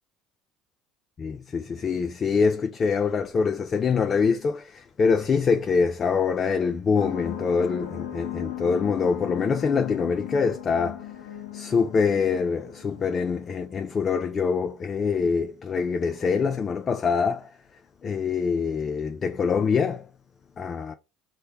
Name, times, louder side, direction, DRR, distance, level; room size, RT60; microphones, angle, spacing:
voice 1, 1.2-11.0 11.5-17.5 18.0-20.0 20.6-21.0, left 5 dB, 35° left, 0.3 m, -24 dB
sound 1, 7.0-14.0, left 11 dB, 85° left, 0.7 m, -37 dB
3.2 x 2.2 x 2.7 m
hypercardioid pair, 70°, 0 cm